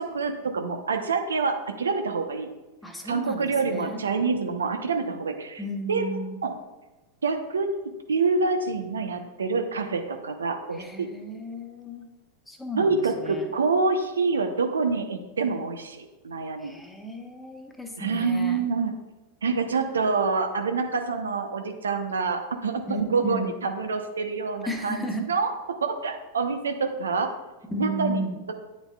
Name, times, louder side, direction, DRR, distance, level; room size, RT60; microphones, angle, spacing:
voice 1, 0.0-2.5 3.0-5.6 5.9-6.1 6.4-6.5 7.2-7.7 8.1-11.1 12.8-16.7 18.0-18.9 19.4-25.5 25.8-27.3 27.7-28.2, right 4 dB, 70° right, 6 dB, 0.9 m, -26 dB
voice 2, 2.8-4.0 5.6-6.4 10.7-12.1 12.5-13.5 16.6-18.6 22.9-23.6 24.6-25.3 27.7-28.4, right 1 dB, 5° left, 3 dB, 1.3 m, -34 dB
9.6 x 9.2 x 2.4 m, 1.1 s
figure-of-eight pair, 90°, 0 cm